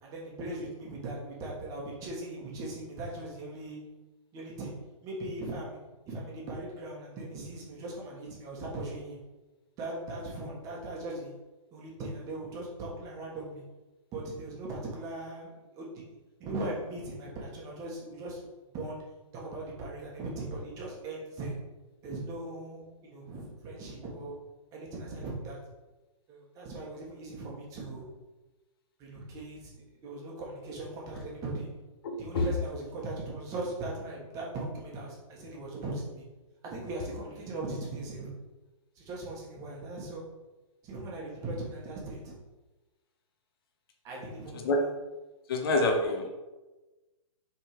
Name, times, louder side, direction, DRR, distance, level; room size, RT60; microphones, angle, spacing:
voice 1, 0.0-3.8 4.3-4.7 5.0-5.8 6.1-9.2 9.8-11.3 11.7-13.6 14.1-16.1 16.4-18.5 18.7-19.0 19.3-21.5 22.0-24.4 24.7-25.6 26.3-28.1 29.0-31.7 32.2-36.2 36.6-38.3 38.9-40.2 40.8-42.4 44.0-44.9, right 2 dB, 20° right, -3 dB, 1.3 m, -39 dB
voice 2, 32.0-32.5 44.5-44.8 45.5-46.3, left 2 dB, 45° left, 3 dB, 0.9 m, -27 dB
6.2 x 3.7 x 4.8 m, 1.1 s
hypercardioid pair, 160°, 17 cm